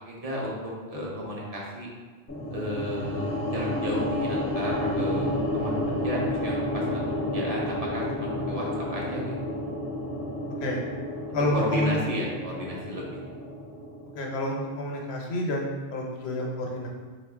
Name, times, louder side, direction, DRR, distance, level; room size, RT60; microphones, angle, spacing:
voice 1, 0.1-1.9 2.5-9.2 11.3-13.1, equal, 40° right, -3 dB, 0.8 m, -33 dB
sound 1, 2.3-14.5, left 1 dB, 15° left, 0.5 m, -31 dB
voice 2, 11.3-12.0 14.2-16.9, left 1 dB, 85° left, -1 dB, 1.0 m, -29 dB
4.0 x 2.4 x 3.4 m, 1.4 s
omnidirectional pair, 1.1 m